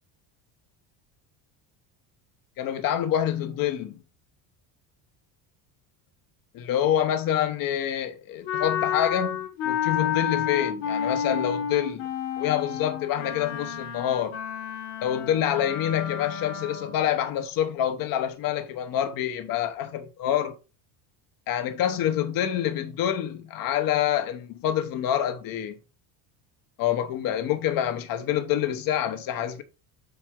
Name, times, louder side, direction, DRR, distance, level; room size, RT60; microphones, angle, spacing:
voice 1, 2.6-4.0 6.5-12.1 12.4-14.4 15.0-20.5 21.5-25.7 26.8-29.6, left 10 dB, 50° left, 1.0 m, -27 dB
Wind instrument woodwind instrument, 8.5-17.1, left 9 dB, 85° left, 2.2 m, -30 dB
8.1 x 4.5 x 3.7 m
cardioid pair, 165°, 44 cm